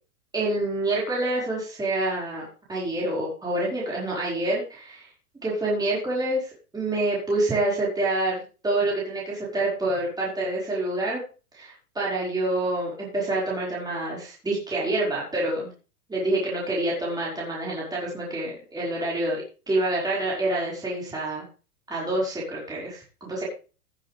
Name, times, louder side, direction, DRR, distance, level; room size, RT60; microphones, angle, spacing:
voice 1, 0.3-5.1 5.4-11.2 11.5-15.7 16.1-21.4 21.9-23.4, right 2 dB, 10° right, -6 dB, 4.9 m, -27 dB
18.0 x 8.5 x 3.4 m, 0.35 s
hypercardioid pair, 130°, 47 cm